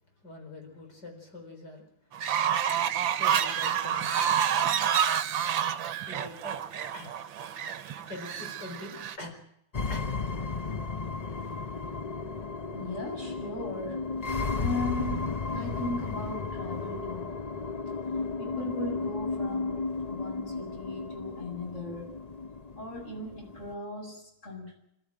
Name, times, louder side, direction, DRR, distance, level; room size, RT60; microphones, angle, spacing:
voice 1, 0.2-4.4 4.8-4.9 5.6-5.7 6.1-6.6 6.9-7.1 8.0-9.3 9.9-10.1, left 2 dB, 55° left, 3 dB, 5.1 m, -45 dB
Fowl, 2.1-9.2, right 9 dB, 75° right, 1.8 m, -28 dB
sound 1, 9.7-23.7, left 4 dB, 75° left, 0.3 m, -34 dB
voice 2, 12.7-17.3 18.4-22.1 22.8-24.8, left 1 dB, 35° left, 0 dB, 8.0 m, -38 dB
26.0 x 13.5 x 8.9 m, 0.78 s
omnidirectional pair, 2.2 m